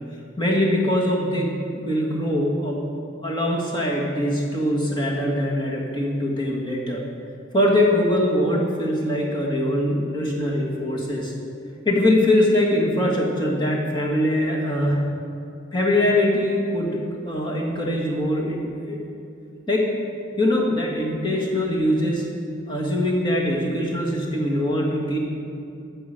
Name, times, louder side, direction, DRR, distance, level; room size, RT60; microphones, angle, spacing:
voice 1, 0.4-2.8 3.2-7.0 7.5-11.3 11.9-15.0 15.7-17.0 17.2-19.0 19.7-19.9 20.4-22.3 22.7-25.2, left 1 dB, 25° left, -3 dB, 1.9 m, -22 dB
13.5 x 6.9 x 6.7 m, 2.6 s
head